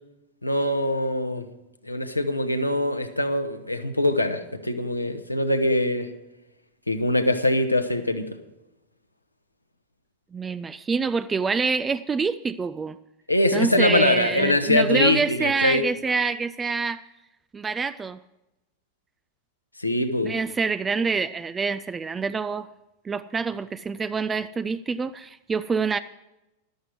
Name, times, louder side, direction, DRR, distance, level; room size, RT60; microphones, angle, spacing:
voice 1, 0.4-1.5 1.8-6.1 6.9-8.3 13.3-15.8 19.8-20.3, left 1 dB, 85° left, 1.2 m, -23 dB
voice 2, 10.3-13.0 13.5-17.0 17.5-18.2 20.2-22.7 23.1-26.0, right 5 dB, 15° right, 0.4 m, -26 dB
13.5 x 12.5 x 4.7 m
figure-of-eight pair, 90°, 0 cm